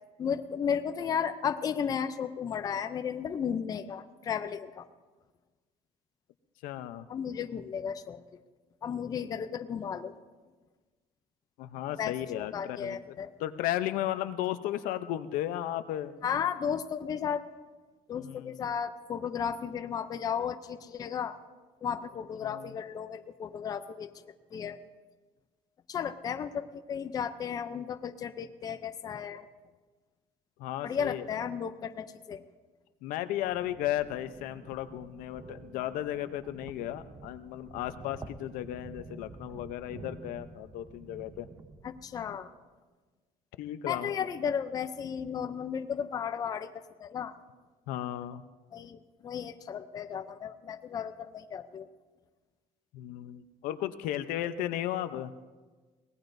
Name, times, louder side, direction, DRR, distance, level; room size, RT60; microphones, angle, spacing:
voice 1, 0.2-4.9 7.1-8.2 8.8-10.1 12.0-13.3 16.2-17.4 18.1-21.4 21.8-24.1 24.5-24.8 25.9-29.5 30.8-32.4 41.8-42.5 43.9-47.3 48.7-49.0 49.2-51.9, left 7 dB, 25° left, 9 dB, 0.5 m, -34 dB
voice 2, 6.6-7.1 11.6-16.2 18.2-18.6 22.4-22.8 30.6-31.4 33.0-41.5 43.6-44.1 47.9-48.4 52.9-55.3, left 13 dB, 85° left, 11 dB, 0.7 m, -35 dB
sound 1, 33.3-42.5, right 3 dB, 20° right, 0.6 m, -49 dB
23.5 x 18.0 x 2.6 m, 1.3 s
cardioid pair, 165°, 14 cm